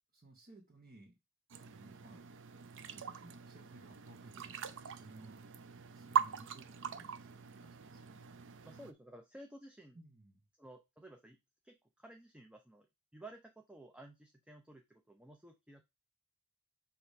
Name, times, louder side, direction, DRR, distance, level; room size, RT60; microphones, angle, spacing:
voice 1, 0.1-1.2 1.6-2.3 2.8-8.2 9.9-10.5, right 2 dB, 40° right, -4 dB, 1.8 m, -59 dB
sound 1, 1.5-8.9, right 7 dB, 60° right, 0.5 m, -41 dB
voice 2, 8.6-10.0 10.6-11.4 11.6-12.9 13.1-15.8, right 1 dB, 5° right, 4 dB, 0.6 m, -54 dB
5.0 x 3.5 x 5.6 m, 0.22 s
head